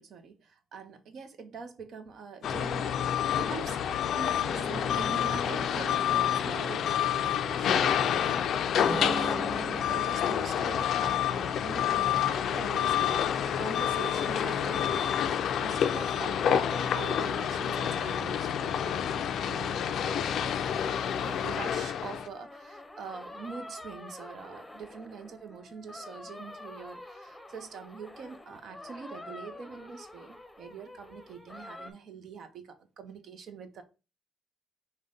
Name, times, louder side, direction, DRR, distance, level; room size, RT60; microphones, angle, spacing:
voice 1, 0.0-3.8 4.1-20.2 21.2-33.8, right 5 dB, 65° right, 8 dB, 0.6 m, -44 dB
sound 1, 2.4-22.3, left 9 dB, 70° left, 0.4 m, -28 dB
sound 2, 4.5-8.1 8.9-10.4, right 2 dB, 20° right, 1.8 m, -40 dB
sound 3, 12.9-19.1 19.4-31.9, left 1 dB, 10° left, 0.7 m, -47 dB
4.9 x 2.2 x 3.8 m, 0.30 s
cardioid pair, 90°, 0 cm